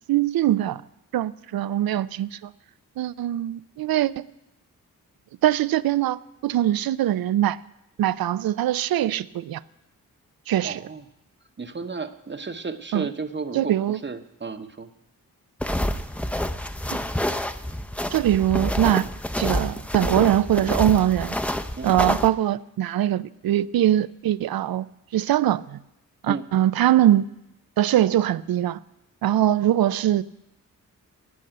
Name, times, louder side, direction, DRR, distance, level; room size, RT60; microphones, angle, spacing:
voice 1, 0.1-0.8 1.1-2.5 3.0-4.2 5.4-7.6 8.0-9.6 10.5-10.8 12.9-13.1 13.5-14.0 18.1-19.1 19.4-21.4 21.8-24.9 25.1-25.8 26.2-27.3 27.8-28.8 29.2-30.2, right 12 dB, 80° right, 0.5 m, -22 dB
voice 2, 10.6-11.0 11.6-14.9 21.7-22.0 26.3-26.4, right 4 dB, 30° right, 0.9 m, -33 dB
sound 1, 15.6-22.3, left 1 dB, 5° left, 0.6 m, -28 dB
16.0 x 5.4 x 8.7 m
cardioid pair, 65°, 36 cm